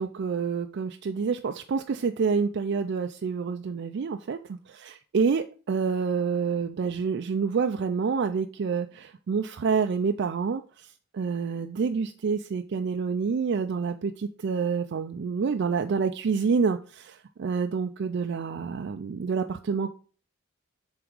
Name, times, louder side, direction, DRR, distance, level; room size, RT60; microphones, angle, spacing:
voice 1, 0.0-4.4 4.8-10.9 11.1-19.9, right 5 dB, 55° right, 6 dB, 0.4 m, -28 dB
7.4 x 3.5 x 4.7 m, 0.39 s
head